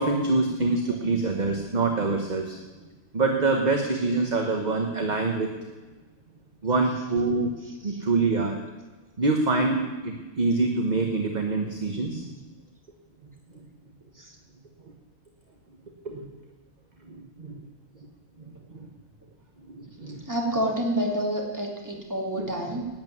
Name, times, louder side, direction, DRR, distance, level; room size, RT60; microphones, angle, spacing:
voice 1, 0.0-2.6 3.1-5.5 6.6-7.5 7.8-8.6 9.2-12.4 13.5-13.6 16.0-16.2 17.1-17.5 18.4-18.9 19.7-20.2 22.4-22.5, right 3 dB, 35° right, 3 dB, 1.2 m, -25 dB
voice 2, 7.7-8.0 14.2-14.4 20.3-22.9, equal, 15° right, 0 dB, 2.3 m, -29 dB
11.5 x 9.1 x 9.3 m, 1.2 s
omnidirectional pair, 1.5 m